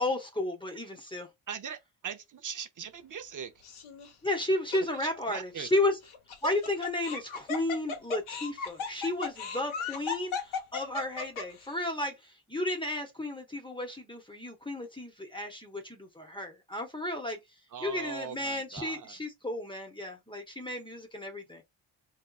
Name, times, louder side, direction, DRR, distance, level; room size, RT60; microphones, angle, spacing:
voice 1, 0.0-1.3 4.2-5.9 6.4-17.4 17.8-21.6, left 1 dB, 10° left, 0.9 m, -33 dB
voice 2, 1.5-3.6 5.0-5.7 17.7-19.2, right 7 dB, 40° right, 0.6 m, -40 dB
Laughter, 3.6-4.1 4.7-4.8 6.1-11.7, left 6 dB, 90° left, 1.0 m, -36 dB
3.5 x 2.7 x 2.3 m
cardioid pair, 100°, 47 cm